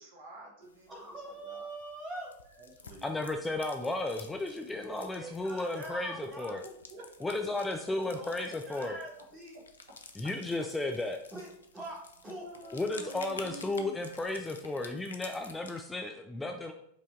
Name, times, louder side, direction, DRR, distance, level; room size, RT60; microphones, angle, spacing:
voice 1, 0.0-1.7 2.6-3.2 6.2-6.3 6.6-7.9 8.2-8.3 9.5-9.6 12.4-14.0, right 1 dB, 55° right, 0 dB, 1.0 m, -49 dB
sound 1, 0.6-15.8, left 4 dB, 75° left, 0.5 m, -52 dB
voice 2, 0.9-2.3 4.7-6.6 8.0-9.6 11.3-12.5, right 2 dB, 20° right, -2 dB, 1.8 m, -44 dB
voice 3, 3.0-6.6 7.2-8.9 10.2-11.2 12.7-16.7, left 2 dB, 10° left, 4 dB, 0.4 m, -34 dB
4.9 x 2.8 x 3.6 m, 0.71 s
figure-of-eight pair, 90°, 0 cm